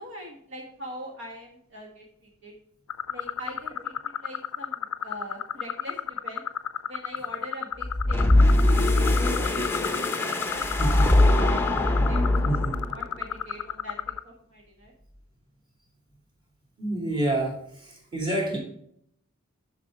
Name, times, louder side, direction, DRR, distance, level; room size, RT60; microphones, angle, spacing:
voice 1, 0.0-2.5 3.1-6.4 6.9-8.2 8.6-9.5 10.2-12.5 12.9-14.0 14.2-14.9, equal, 55° right, 0 dB, 1.3 m, -43 dB
sound 1, 2.9-14.2, left 9 dB, 85° left, 0.5 m, -32 dB
sound 2, 7.8-13.1, left 1 dB, 10° left, 0.7 m, -22 dB
voice 2, 10.8-11.1 12.4-12.7 16.8-18.6, right 1 dB, 20° right, -1 dB, 2.4 m, -28 dB
7.6 x 6.1 x 4.6 m, 0.69 s
head